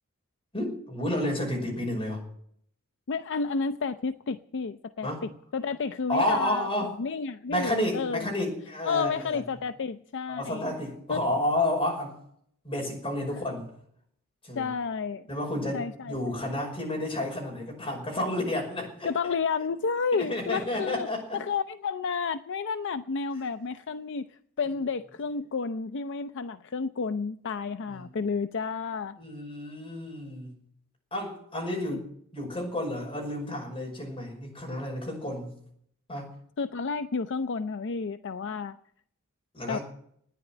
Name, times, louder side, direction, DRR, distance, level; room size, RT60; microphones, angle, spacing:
voice 1, 0.5-2.2 5.0-5.2 6.1-7.0 7.5-9.4 10.4-12.1 12.6-13.7 14.4-14.7 15.3-19.1 20.2-21.4 27.9-28.0 29.2-30.5 31.1-32.0 32.3-35.5 36.1-36.3 39.5-39.8, left 1 dB, 25° left, 0 dB, 5.8 m, -31 dB
voice 2, 3.1-8.3 8.8-10.7 11.1-11.2 14.6-15.3 15.7-16.2 19.0-29.2 31.9-32.0 36.6-38.8 39.7-39.8, left 5 dB, 55° left, 10 dB, 0.5 m, -31 dB
14.5 x 10.0 x 9.1 m, 0.68 s
head